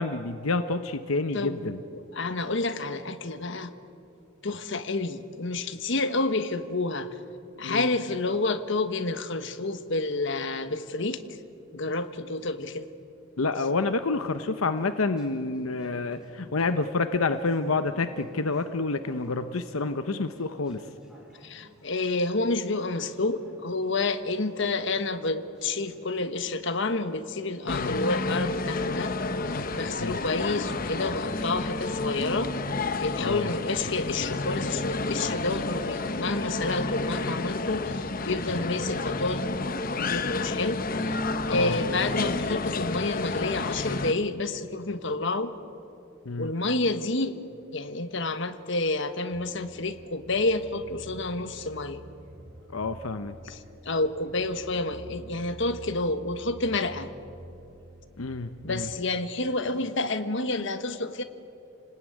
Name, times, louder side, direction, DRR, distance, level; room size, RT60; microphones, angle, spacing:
voice 1, 0.0-1.8 7.6-7.9 13.4-20.8 27.6-28.0 30.0-30.2 33.2-33.5 41.5-41.8 46.2-46.5 52.7-53.4 58.2-58.9, left 3 dB, 85° left, 9 dB, 1.0 m, -28 dB
voice 2, 1.3-3.7 4.4-7.1 7.6-11.2 11.7-12.8 21.4-29.1 29.5-32.5 33.0-39.5 39.9-40.8 41.5-45.5 46.4-47.5 47.7-52.0 53.5-53.6 53.8-57.1 58.6-61.2, left 2 dB, 60° left, 9 dB, 1.4 m, -29 dB
Conversation / Chatter, 13.6-33.2, equal, 5° right, 5.4 m, -53 dB
sound 1, 27.7-44.1, left 3 dB, 40° left, 1.0 m, -30 dB
sound 2, 49.3-59.0, right 1 dB, 65° right, 3.1 m, -48 dB
29.5 x 19.5 x 9.4 m, 2.7 s
head